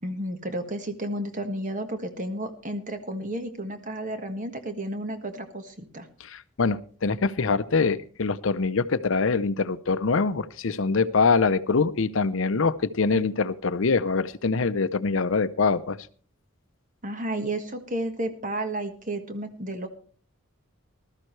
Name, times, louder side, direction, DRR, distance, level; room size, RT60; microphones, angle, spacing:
voice 1, 0.0-6.1 17.0-19.9, right 1 dB, 40° right, 7 dB, 1.6 m, -32 dB
voice 2, 6.2-16.0, left 4 dB, 70° left, 14 dB, 0.7 m, -24 dB
19.5 x 13.0 x 3.2 m, 0.41 s
head